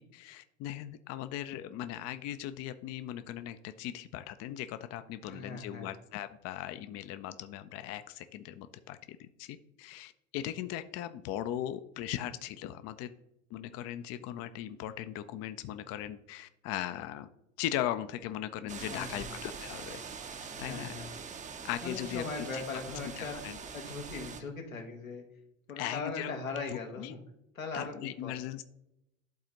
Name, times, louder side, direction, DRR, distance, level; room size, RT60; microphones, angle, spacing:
voice 1, 0.0-13.1 13.5-17.3 17.6-20.0 20.6-20.9 21.6-22.6 23.2-23.6 25.8-26.3 26.7-27.1 27.7-28.6, left 12 dB, 40° left, 11 dB, 0.5 m, -38 dB
voice 2, 5.2-5.9 18.8-19.3 20.5-21.1 21.8-23.4 23.7-25.2 25.7-27.2 27.5-28.4, left 4 dB, 90° left, 2 dB, 1.2 m, -40 dB
sound 1, 18.7-24.4, right 6 dB, 20° right, 0.6 m, -43 dB
11.5 x 4.1 x 3.0 m, 0.82 s
figure-of-eight pair, 75°, 39 cm